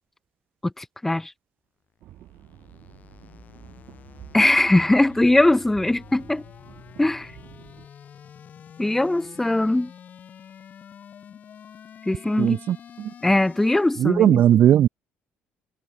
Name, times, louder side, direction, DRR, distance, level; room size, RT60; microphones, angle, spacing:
voice 1, 0.6-1.3 4.3-6.4 7.0-7.3 8.8-9.9 12.1-12.6 13.2-14.4, left 2 dB, 5° left, 0.6 m, -20 dB
sound 1, 2.0-14.2, left 8 dB, 45° left, 3.3 m, -47 dB
sound 2, 2.0-7.9, right 13 dB, 65° right, 1.9 m, -49 dB
voice 2, 12.4-13.1 14.0-14.9, right 10 dB, 50° right, 0.5 m, -18 dB
cardioid pair, 140°, 4 cm